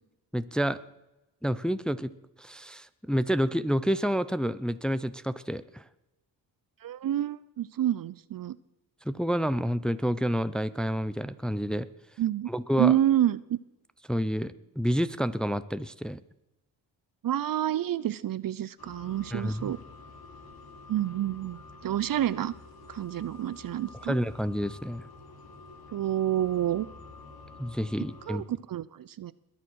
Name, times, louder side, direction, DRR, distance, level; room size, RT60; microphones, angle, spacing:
voice 1, 0.3-0.8 1.4-2.1 2.4-5.8 9.1-11.9 12.5-13.0 14.1-16.2 19.3-19.7 24.1-25.0 27.6-28.4, equal, ahead, 13 dB, 0.6 m, -29 dB
voice 2, 6.8-8.6 12.2-12.5 12.8-13.6 17.2-19.8 20.9-22.5 22.9-24.2 25.9-26.9 28.3-29.3, right 12 dB, 50° right, 18 dB, 0.6 m, -28 dB
sound 1, 18.8-28.4, left 3 dB, 55° left, 3.1 m, -49 dB
21.5 x 7.4 x 6.3 m, 0.95 s
cardioid pair, 75°, 44 cm